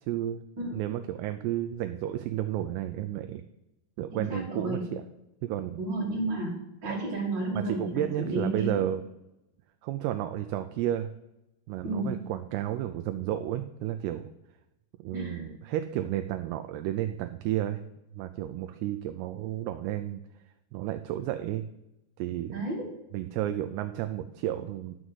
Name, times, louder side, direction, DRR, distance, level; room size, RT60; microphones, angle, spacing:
voice 1, 0.1-0.4 0.7-3.5 4.0-5.0 5.4-5.8 6.9-7.0 7.6-9.0 9.8-11.1 11.7-14.3 15.0-17.8 18.1-20.2 20.7-21.6 22.2-22.6 23.1-25.0, right 12 dB, 80° right, 8 dB, 2.6 m, -32 dB
voice 2, 4.1-4.9 5.8-8.8 11.8-12.2 15.1-15.5 22.5-22.9, right 2 dB, 35° right, -3 dB, 2.2 m, -32 dB
9.9 x 6.2 x 7.9 m, 0.90 s
omnidirectional pair, 4.8 m